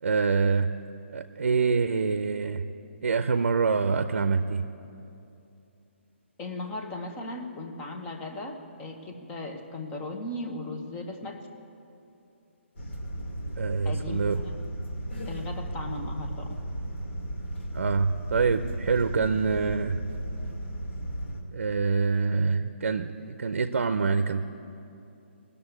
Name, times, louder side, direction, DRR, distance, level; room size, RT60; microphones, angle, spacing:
voice 1, 0.0-0.7 1.1-2.6 3.0-4.7 13.6-14.4 17.7-20.0 21.5-24.4, right 5 dB, 85° right, 10 dB, 0.6 m, -25 dB
voice 2, 6.4-11.4 13.8-14.6 15.3-16.6, left 2 dB, 15° left, 4 dB, 1.0 m, -37 dB
sound 1, 12.7-21.4, right 1 dB, 70° left, 2.5 m, -35 dB
18.0 x 6.9 x 9.7 m, 2.7 s
hypercardioid pair, 165°, 7 cm